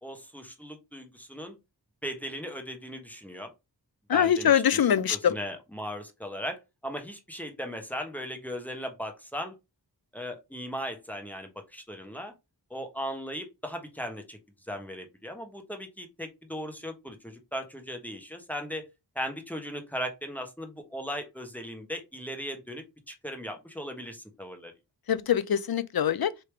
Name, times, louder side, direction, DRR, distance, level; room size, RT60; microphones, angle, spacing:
voice 1, 0.0-1.6 2.0-3.5 4.1-4.8 5.1-9.5 10.1-12.3 12.7-14.4 14.7-18.8 19.1-24.7, equal, 5° left, 1.1 m, -37 dB
voice 2, 4.1-5.4 25.1-26.3, left 9 dB, 60° left, 0.5 m, -23 dB
3.3 x 2.9 x 4.5 m
wide cardioid pair, 65°, 41 cm